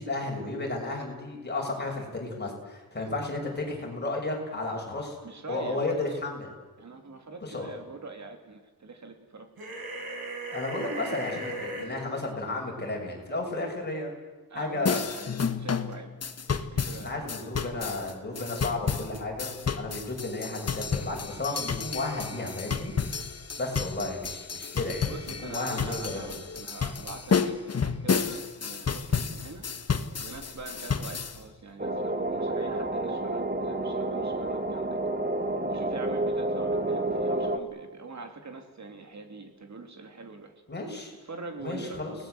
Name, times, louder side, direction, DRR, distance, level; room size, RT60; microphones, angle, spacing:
voice 1, 0.0-5.2 5.5-6.5 7.4-7.7 10.5-14.1 14.5-15.0 16.9-22.9 23.6-25.0 25.4-26.2 40.7-41.1 41.6-42.1, left 2 dB, 30° left, -1 dB, 6.6 m, -33 dB
voice 2, 5.2-6.2 6.8-9.5 11.6-11.7 14.5-16.1 16.5-17.3 25.0-29.6 30.2-35.0 35.6-40.5 41.2-42.1, right 3 dB, 50° right, 5 dB, 3.1 m, -43 dB
sound 1, 9.6-11.8, right 1 dB, 80° right, 6.2 m, -36 dB
sound 2, 14.9-31.4, left 6 dB, 45° left, 1.3 m, -31 dB
sound 3, 31.8-37.6, right 2 dB, 25° right, 1.8 m, -29 dB
29.5 x 19.5 x 8.0 m, 1.3 s
wide cardioid pair, 150°, 36 cm